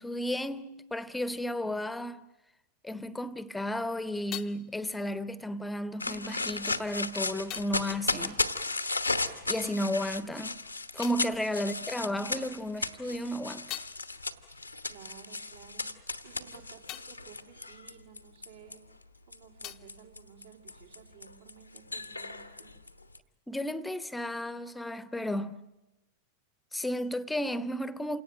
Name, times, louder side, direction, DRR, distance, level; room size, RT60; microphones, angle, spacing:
voice 1, 0.0-2.3 2.8-8.4 9.5-10.6 10.9-13.7 23.5-25.6 26.7-28.2, left 1 dB, 5° left, 1.0 m, -33 dB
sound 1, 6.0-18.7 19.3-23.2, left 3 dB, 85° left, 1.2 m, -35 dB
sound 2, 10.9-12.4 12.9-18.9 19.1-21.2, left 15 dB, 35° left, 0.8 m, -49 dB
voice 2, 14.9-18.8 19.3-22.7, right 8 dB, 65° right, 3.8 m, -54 dB
28.0 x 18.0 x 9.1 m
figure-of-eight pair, 90°, 0 cm